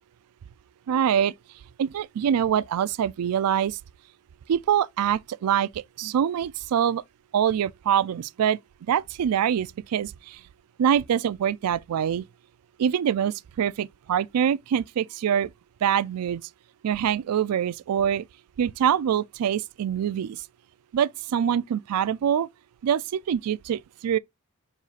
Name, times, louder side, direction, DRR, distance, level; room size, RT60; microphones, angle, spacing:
voice 1, 0.9-1.3 1.8-3.8 4.5-7.0 7.3-8.6 8.9-10.4 10.8-12.2 12.8-15.5 15.8-16.4 16.8-18.2 18.6-20.5 20.9-22.5 22.8-24.2, right 9 dB, 90° right, 0.3 m, -24 dB
7.3 x 5.4 x 2.4 m
head